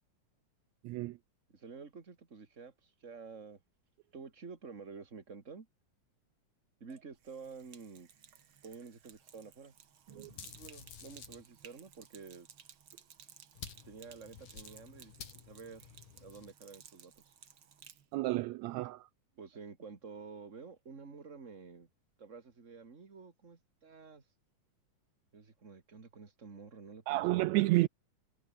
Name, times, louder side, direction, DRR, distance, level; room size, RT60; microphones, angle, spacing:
voice 1, 0.8-1.2 10.2-10.3 18.1-19.1 27.1-27.9, right 19 dB, 80° right, 1.7 m, -30 dB
voice 2, 1.5-3.6 4.1-5.7 6.8-8.1 8.6-9.7 10.1-12.5 13.8-17.3 19.4-21.9 22.2-24.2 25.3-27.3, right 5 dB, 25° right, 2.6 m, -50 dB
Sink (filling or washing), 7.1-18.1, right 8 dB, 45° right, 2.1 m, -58 dB
sound 1, 10.3-11.4 13.6-16.5, left 8 dB, 80° left, 4.4 m, -51 dB
omnidirectional pair, 3.6 m